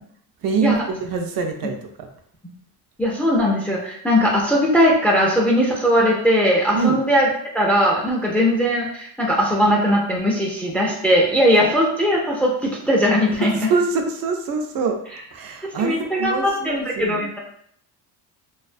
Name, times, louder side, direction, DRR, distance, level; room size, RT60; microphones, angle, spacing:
voice 1, 0.4-2.1 6.7-7.0 13.6-15.0 15.3-17.2, right 4 dB, 60° right, 4 dB, 0.5 m, -24 dB
voice 2, 3.0-7.3 7.5-13.7 15.6-17.4, equal, 5° left, -2 dB, 0.3 m, -19 dB
2.3 x 2.2 x 2.4 m, 0.66 s
cardioid pair, 110°, 40 cm